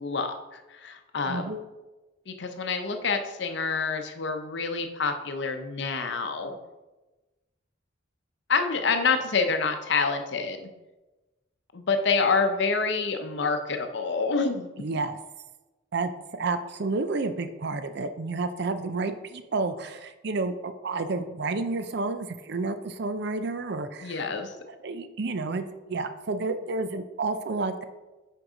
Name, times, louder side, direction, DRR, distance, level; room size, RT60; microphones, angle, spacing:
voice 1, 0.0-1.4 2.3-6.6 8.5-10.7 11.7-14.7 24.0-24.5, left 4 dB, 60° left, 6 dB, 0.7 m, -27 dB
voice 2, 1.3-1.6 14.8-15.2 15.9-24.2 24.8-27.8, right 3 dB, 55° right, 10 dB, 0.5 m, -30 dB
6.3 x 4.6 x 5.0 m, 1.1 s
head